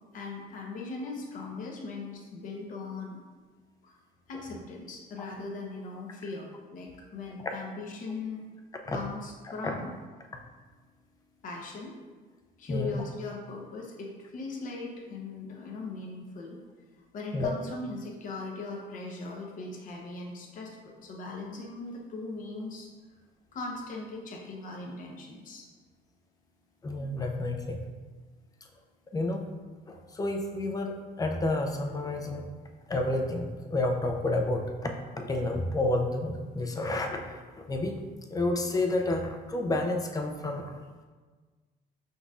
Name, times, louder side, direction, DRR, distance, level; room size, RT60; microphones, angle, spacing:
voice 1, 0.1-3.2 3.8-4.0 4.3-8.4 8.9-9.9 11.4-11.9 12.6-16.6 17.1-22.9 23.5-25.7, left 3 dB, 50° left, -1 dB, 0.9 m, -39 dB
voice 2, 12.7-13.0 17.3-17.5 26.8-27.8 29.1-29.4 29.9-32.5 32.9-34.9 35.2-38.0 38.3-40.8, left 2 dB, 20° left, 3 dB, 0.5 m, -30 dB
5.2 x 3.9 x 2.4 m, 1.4 s
cardioid pair, 110°, 17 cm